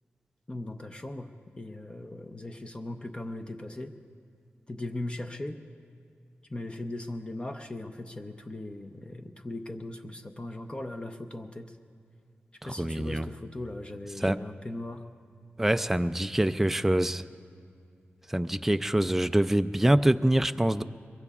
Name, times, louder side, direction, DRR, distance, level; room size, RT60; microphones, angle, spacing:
voice 1, 0.5-3.9 4.7-5.6 6.5-11.8 12.6-15.1, left 1 dB, 25° left, 5 dB, 0.6 m, -38 dB
voice 2, 12.8-13.3 14.2-14.4 15.6-17.2 18.3-20.8, right 1 dB, 5° right, 11 dB, 0.3 m, -25 dB
22.5 x 22.5 x 2.4 m, 2.3 s
wide cardioid pair, 115°, 4 cm